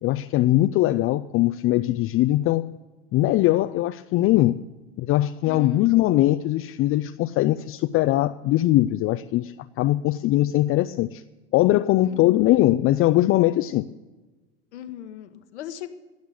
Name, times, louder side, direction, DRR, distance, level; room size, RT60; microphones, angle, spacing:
voice 1, 0.0-2.7 3.1-4.6 5.0-11.2 11.5-13.8, left 15 dB, 40° left, 0.5 m, -21 dB
voice 2, 5.4-5.9 12.0-12.4 14.7-15.9, left 11 dB, 85° left, 1.4 m, -38 dB
17.0 x 6.6 x 9.9 m
supercardioid pair, 100°, 33 cm